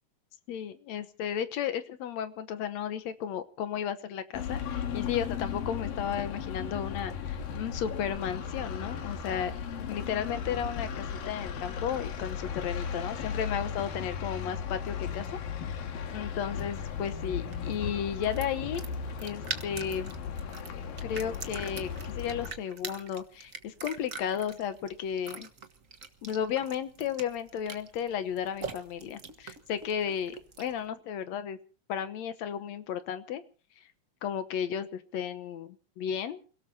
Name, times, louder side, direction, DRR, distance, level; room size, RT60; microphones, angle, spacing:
voice 1, 0.5-9.5 9.9-15.3 15.5-15.8 16.1-18.8 19.2-20.1 21.0-25.5 26.2-31.6 31.9-33.4 34.2-36.4, left 8 dB, 65° left, 10 dB, 2.0 m, -34 dB
sound 1, 4.3-22.5, left 7 dB, 85° left, 3.7 m, -36 dB
sound 2, 16.0-30.8, right 5 dB, 85° right, 0.7 m, -44 dB
29.0 x 17.5 x 2.8 m, 0.39 s
omnidirectional pair, 3.9 m